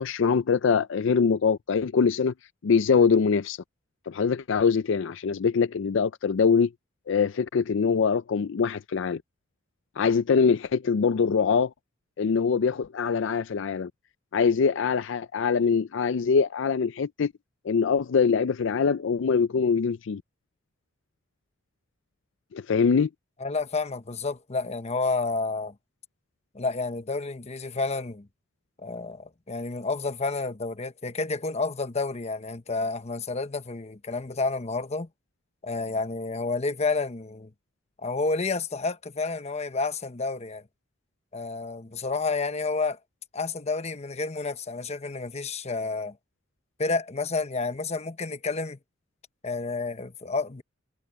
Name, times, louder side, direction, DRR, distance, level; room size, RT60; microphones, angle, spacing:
voice 1, 0.0-2.3 2.6-3.6 4.1-6.7 7.1-9.2 10.0-11.7 12.2-13.9 14.3-17.3 17.6-20.2 22.5-23.1, left 5 dB, 70° left, 0.4 m, -23 dB
voice 2, 23.4-25.7 26.5-28.3 28.8-35.1 35.6-37.5 38.0-40.6 41.3-43.0 43.3-46.2 46.8-48.8 49.4-50.6, left 3 dB, 35° left, 1.0 m, -30 dB
head